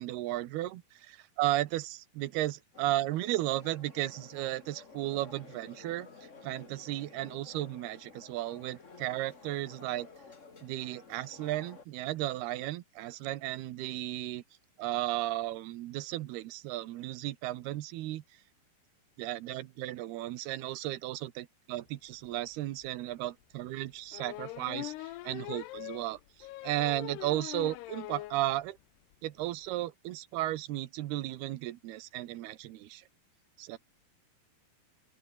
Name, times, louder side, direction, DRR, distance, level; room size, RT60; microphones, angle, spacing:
voice 1, 0.0-6.1 6.4-10.1 10.6-14.4 14.8-18.2 19.2-26.2 26.6-28.8 29.2-33.0 33.6-33.8, right 15 dB, 80° right, 3.0 m, -34 dB
sound 1, 2.7-11.8, left 4 dB, 30° left, 1.4 m, -53 dB
sound 2, 22.4-22.5 22.8-22.9 24.1-28.4 28.8-28.9 29.1-29.2 29.4-29.7, left 17 dB, 85° left, 3.0 m, -42 dB
open air
omnidirectional pair, 4.6 m